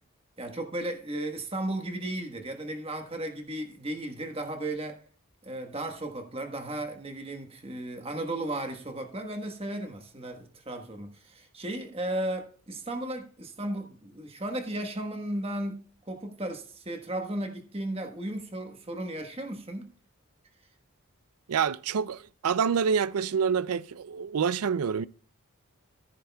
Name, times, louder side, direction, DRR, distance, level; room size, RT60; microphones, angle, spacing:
voice 1, 0.4-5.0 5.4-19.9, right 1 dB, 25° right, 1.3 m, -35 dB
voice 2, 21.5-25.1, right 6 dB, 90° right, 0.4 m, -27 dB
14.5 x 9.9 x 2.3 m
head